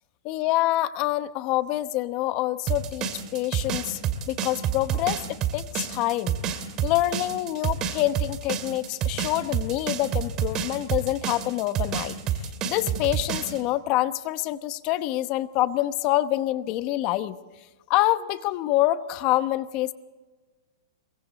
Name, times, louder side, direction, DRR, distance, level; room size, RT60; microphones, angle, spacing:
voice 1, 0.2-4.0 4.3-6.4 6.8-12.2 12.6-17.4 17.9-19.9, left 15 dB, 35° left, 13 dB, 1.0 m, -26 dB
sound 1, 2.7-13.6, right 9 dB, 25° right, 2.3 m, -28 dB
27.0 x 23.5 x 4.1 m, 1.3 s
hypercardioid pair, 145°, 2 cm